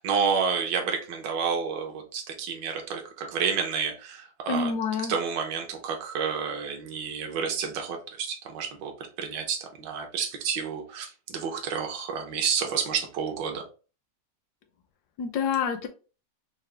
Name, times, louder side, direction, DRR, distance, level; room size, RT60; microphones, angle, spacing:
voice 1, 0.0-4.7 5.1-13.6, right 6 dB, 80° right, 3 dB, 1.4 m, -30 dB
voice 2, 4.5-5.1 15.2-15.9, left 5 dB, 75° left, 8 dB, 1.1 m, -27 dB
4.7 x 2.0 x 3.2 m, 0.35 s
omnidirectional pair, 1.9 m